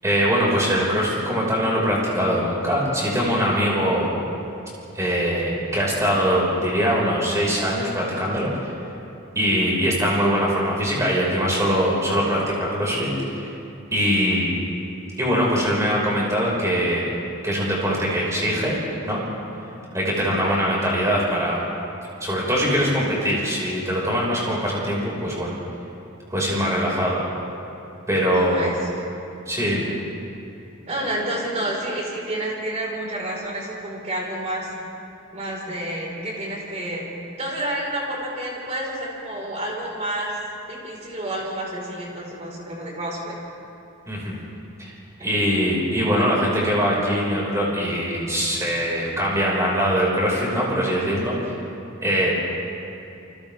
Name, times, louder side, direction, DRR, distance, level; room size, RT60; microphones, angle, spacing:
voice 1, 0.0-4.1 4.9-8.7 9.3-13.5 13.9-14.5 15.2-17.0 17.4-18.8 19.0-19.3 19.9-21.6 22.2-25.6 26.3-27.2 28.1-28.7 29.5-29.8 44.1-44.4 44.8-44.9 45.2-51.5 52.0-52.3, equal, 15° right, -5 dB, 5.8 m, -22 dB
voice 2, 28.3-28.9 30.9-34.7 35.3-37.0 37.4-40.4 40.7-43.4, right 1 dB, 30° right, -3 dB, 5.1 m, -29 dB
29.5 x 25.0 x 3.7 m, 2.7 s
head